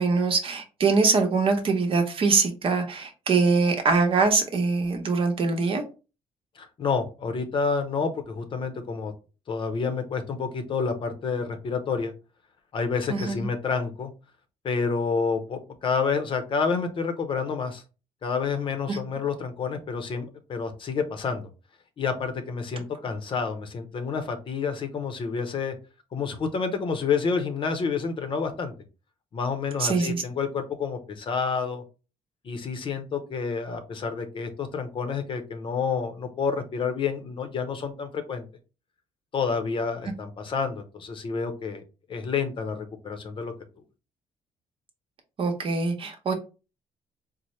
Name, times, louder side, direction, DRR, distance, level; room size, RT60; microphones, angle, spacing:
voice 1, 0.0-5.8 13.1-13.5 18.9-19.0 29.8-30.2 45.4-46.3, right 4 dB, 50° right, 4 dB, 0.9 m, -23 dB
voice 2, 6.6-9.1 9.5-12.1 12.7-14.1 14.6-17.8 18.2-21.5 22.0-25.7 26.1-28.7 29.3-31.8 32.4-38.5 39.3-41.8 42.1-43.5, left 5 dB, 45° left, 7 dB, 0.7 m, -29 dB
4.2 x 2.0 x 3.1 m, 0.32 s
cardioid pair, 110°, 12 cm